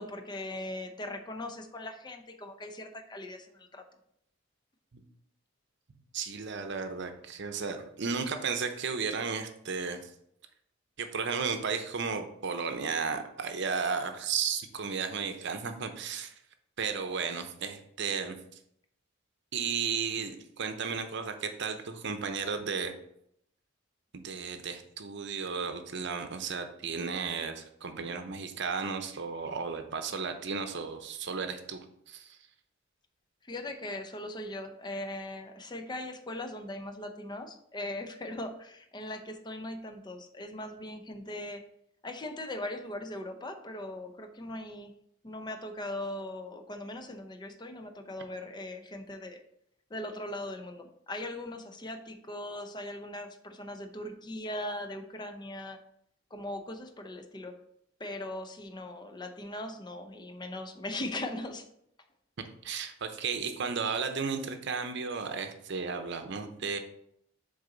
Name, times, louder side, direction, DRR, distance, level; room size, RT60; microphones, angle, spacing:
voice 1, 0.0-3.8 33.4-41.6 42.0-44.9 45.2-49.4 49.9-55.8 56.3-57.6 58.0-61.7, left 1 dB, 20° left, 7 dB, 0.6 m, -39 dB
voice 2, 6.1-10.1 11.0-16.3 16.8-18.4 19.5-22.9 24.1-32.4 62.6-66.8, right 5 dB, 60° right, 7 dB, 0.7 m, -34 dB
6.7 x 4.0 x 3.9 m, 0.73 s
head